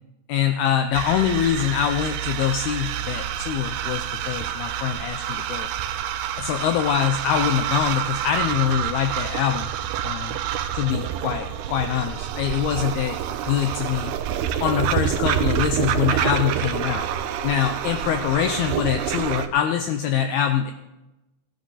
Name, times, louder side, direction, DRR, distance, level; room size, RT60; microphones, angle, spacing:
voice 1, 0.3-5.7 6.4-9.7 10.0-10.4 10.7-13.2 13.4-14.1 14.6-17.1 17.4-20.7, left 9 dB, 90° left, 6 dB, 2.2 m, -24 dB
sound 1, 0.9-19.5, right 10 dB, 80° right, 2.3 m, -27 dB
17.0 x 10.0 x 4.0 m, 1.0 s
omnidirectional pair, 5.2 m